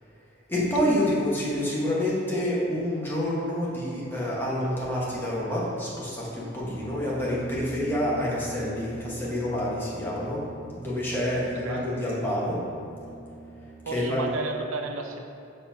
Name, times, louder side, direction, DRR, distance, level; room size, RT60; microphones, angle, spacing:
voice 1, 0.5-10.4 10.7-12.6 13.9-14.2, left 1 dB, 10° left, -7 dB, 1.3 m, -28 dB
Brass instrument, 6.6-14.1, right 2 dB, 25° left, 0.8 m, -43 dB
voice 2, 11.3-11.9 13.8-15.3, right 3 dB, 90° right, 4 dB, 0.6 m, -33 dB
5.5 x 4.3 x 5.7 m, 2.7 s
head